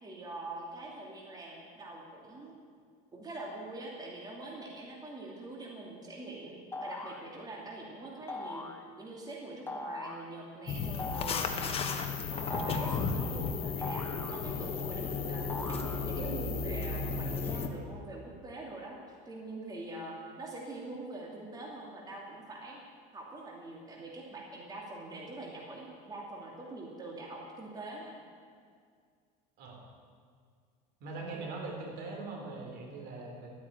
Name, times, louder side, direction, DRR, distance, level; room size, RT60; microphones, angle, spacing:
voice 1, 0.0-2.5 3.1-8.7 9.0-11.6 12.3-19.0 19.2-22.8 23.1-28.2 31.3-31.5, right 2 dB, 20° right, -2 dB, 2.6 m, -44 dB
sound 1, 6.7-7.3 8.3-8.8 9.7-10.3 11.0-11.6 12.5-13.2 13.8-14.8 15.5-16.3, left 2 dB, 10° left, 1.1 m, -41 dB
sound 2, 10.7-17.7, left 5 dB, 30° left, 1.3 m, -34 dB
voice 2, 31.0-33.5, right 3 dB, 60° right, 1 dB, 3.7 m, -41 dB
13.5 x 9.4 x 9.0 m, 2.1 s
cardioid pair, 130°, 19 cm